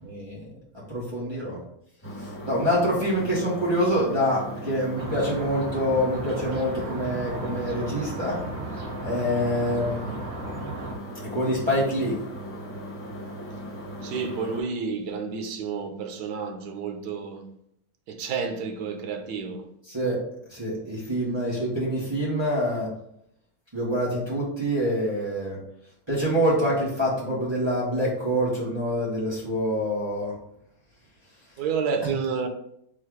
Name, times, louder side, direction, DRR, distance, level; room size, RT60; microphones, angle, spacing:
voice 1, 0.0-0.5 0.7-1.6 2.2-8.4 9.0-10.1 11.2-12.2 19.9-20.2 20.5-22.9 23.7-25.6 26.1-30.3 32.0-32.1, equal, 20° right, 1.1 m, -26 dB
sound 1, 2.0-14.6, equal, 15° left, 0.5 m, -38 dB
sound 2, 4.9-10.9, right 2 dB, 55° right, 0.9 m, -36 dB
voice 2, 14.0-17.5 18.1-19.7 31.6-32.5, right 5 dB, 90° right, 1.2 m, -30 dB
3.7 x 2.5 x 4.6 m
omnidirectional pair, 1.6 m